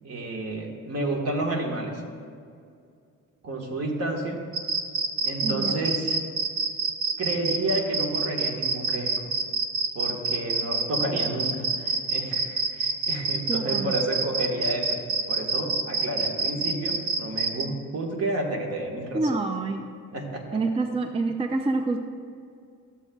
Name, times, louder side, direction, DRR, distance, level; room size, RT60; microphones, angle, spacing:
voice 1, 0.0-2.0 3.4-4.4 5.2-6.2 7.2-9.3 9.9-15.0 15.3-19.2 20.1-20.6, right 1 dB, 55° right, 1 dB, 1.5 m, -30 dB
sound 1, 4.5-17.6, right 4 dB, 75° right, 0.7 m, -26 dB
voice 2, 5.4-5.7 13.5-13.9 19.1-19.8 20.5-22.0, right 3 dB, 20° right, 6 dB, 0.4 m, -27 dB
13.5 x 7.2 x 2.3 m, 2.3 s
cardioid pair, 90°, 30 cm